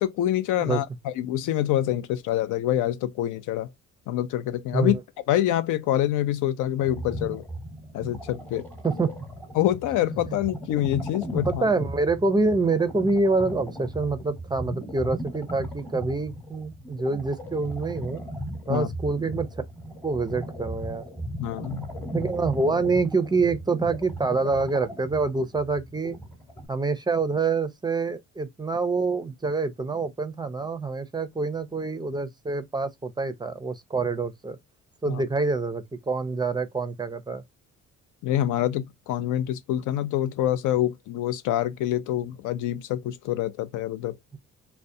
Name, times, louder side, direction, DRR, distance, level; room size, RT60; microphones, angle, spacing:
voice 1, 0.0-3.7 4.1-5.0 5.3-7.4 7.9-8.7 9.5-11.6 18.7-18.9 21.4-21.9 35.1-35.2 38.2-44.2, left 12 dB, 85° left, 0.5 m, -26 dB
sound 1, 6.8-26.7, equal, 5° left, 0.9 m, -37 dB
voice 2, 11.5-18.2 18.7-19.5 20.0-21.0 22.1-26.2 26.7-34.6 35.0-37.4, right 3 dB, 15° right, 0.4 m, -26 dB
2.3 x 2.1 x 2.5 m
cardioid pair, 90°, 30 cm